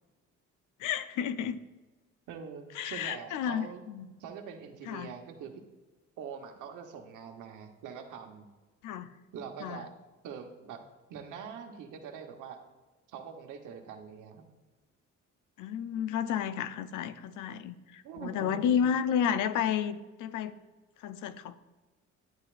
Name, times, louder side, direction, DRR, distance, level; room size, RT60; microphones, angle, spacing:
voice 1, 0.8-1.6 2.7-4.1 4.9-5.1 8.8-9.2 9.6-9.8 15.6-20.5 21.0-21.6, left 8 dB, 85° left, 13 dB, 0.6 m, -31 dB
voice 2, 2.3-3.8 4.2-5.5 6.2-8.5 9.3-9.9 10.2-10.8 11.1-12.6 13.1-14.4 18.0-18.9, right 7 dB, 85° right, 4 dB, 1.1 m, -44 dB
10.5 x 9.7 x 2.5 m, 1.2 s
cardioid pair, 90°, 30 cm